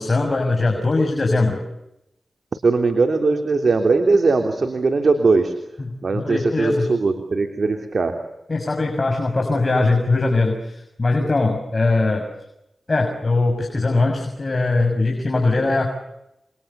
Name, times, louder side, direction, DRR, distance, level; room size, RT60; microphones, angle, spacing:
voice 1, 0.0-1.6 5.8-6.9 8.5-12.3 12.9-15.9, left 3 dB, 45° left, 3 dB, 6.5 m, -21 dB
voice 2, 2.5-5.5 6.0-8.2, right 3 dB, 65° right, 5 dB, 3.3 m, -19 dB
29.0 x 24.5 x 7.0 m, 0.86 s
cardioid pair, 45°, 0 cm